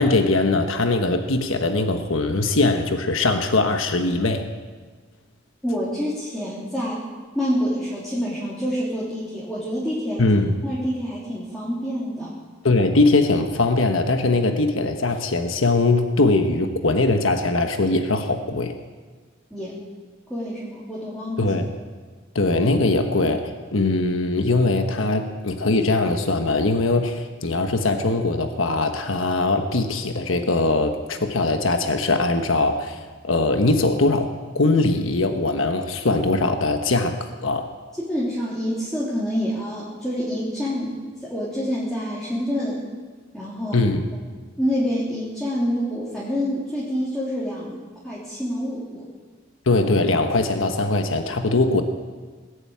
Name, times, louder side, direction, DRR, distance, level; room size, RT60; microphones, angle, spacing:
voice 1, 0.0-4.4 10.2-10.5 12.6-18.7 21.4-21.7 22.3-33.0 33.2-34.3 34.5-37.1 37.4-37.7 43.7-44.0 49.7-51.8, left 2 dB, 80° left, 6 dB, 1.3 m, -21 dB
voice 2, 5.6-7.0 7.3-10.2 10.6-12.3 19.5-19.8 20.3-21.5 38.0-42.8 43.3-43.8 44.6-49.1, equal, ahead, -8 dB, 3.3 m, -27 dB
20.0 x 8.1 x 8.7 m, 1.4 s
head